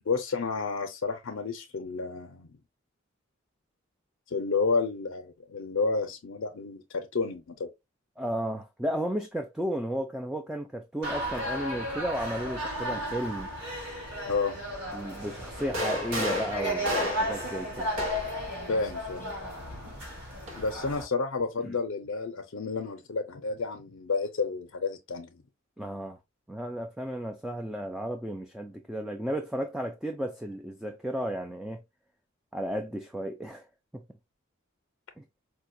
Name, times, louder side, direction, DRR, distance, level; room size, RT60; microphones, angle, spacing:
voice 1, 0.1-2.5 4.3-7.7 14.3-14.6 18.7-19.2 20.5-25.4, left 4 dB, 75° left, 0.5 m, -30 dB
voice 2, 8.2-13.5 14.9-17.9 25.8-26.2 26.5-31.8 32.5-33.6 33.9-34.0 35.2-35.3, equal, 5° right, 0.3 m, -33 dB
sound 1, 11.0-21.0, equal, 55° right, 2.1 m, -34 dB
sound 2, 15.6-18.5 19.6-20.7, equal, 85° right, 1.0 m, -33 dB
4.5 x 2.2 x 2.5 m
head